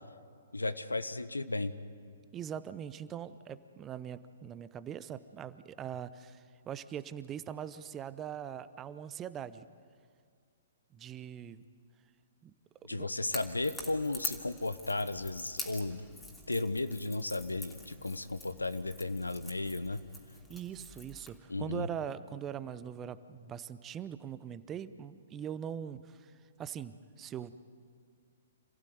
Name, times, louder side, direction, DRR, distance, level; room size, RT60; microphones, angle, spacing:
voice 1, 0.5-1.7 12.8-16.0 16.5-20.0 21.5-21.9, left 2 dB, 85° left, 13 dB, 1.0 m, -34 dB
voice 2, 2.3-9.6 10.9-11.6 12.4-12.5 12.9-13.1 20.5-26.3 26.6-27.6, right 9 dB, 20° right, 14 dB, 0.8 m, -42 dB
Crackle / Crack, 13.3-21.4, left 2 dB, 10° left, 2.9 m, -45 dB
27.5 x 15.5 x 9.4 m, 2.2 s
figure-of-eight pair, 120°, 0 cm